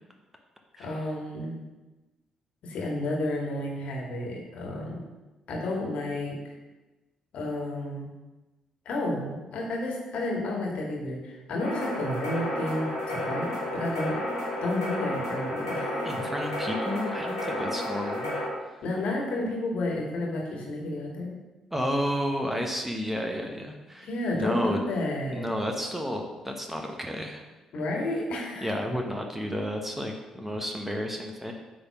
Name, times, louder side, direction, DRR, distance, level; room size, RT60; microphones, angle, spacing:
voice 1, 0.8-1.7 2.6-5.1 5.5-6.5 7.3-8.1 8.9-14.2 14.6-15.8 17.0-17.1 18.8-21.3 24.0-25.5 27.7-28.7, left 1 dB, 60° left, -1 dB, 1.9 m, -31 dB
sound 1, 11.6-18.5, left 1 dB, 85° left, 1.9 m, -31 dB
voice 2, 16.0-18.4 21.7-24.1 24.3-24.8 25.3-27.4 28.6-31.5, equal, 10° right, 2 dB, 1.1 m, -31 dB
8.5 x 3.5 x 5.9 m, 1.1 s
figure-of-eight pair, 40°, 2 cm